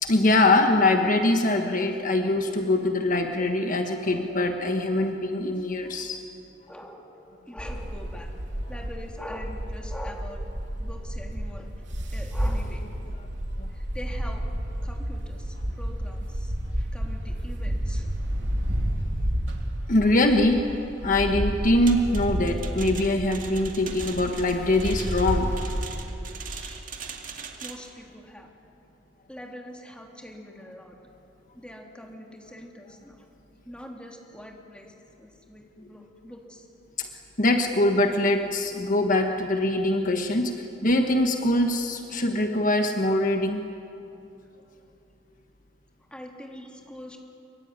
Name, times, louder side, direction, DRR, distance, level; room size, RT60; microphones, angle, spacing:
voice 1, 0.0-6.2 13.6-13.7 19.9-25.6 37.0-37.1 37.4-43.6, left 2 dB, 45° left, 5 dB, 1.4 m, -23 dB
voice 2, 6.7-7.2 7.5-8.3 8.7-10.4 10.8-11.7 12.1-13.2 13.7-14.4 14.8-18.1 26.5-27.0 27.6-28.5 29.3-31.0 31.5-33.2 33.6-36.7 46.1-47.2, left 1 dB, 5° left, 0 dB, 3.2 m, -43 dB
sound 1, 7.6-25.9, equal, 90° right, 3.2 m, -31 dB
sound 2, 21.9-27.9, right 6 dB, 50° right, 2.3 m, -41 dB
24.5 x 24.0 x 9.7 m, 2.8 s
head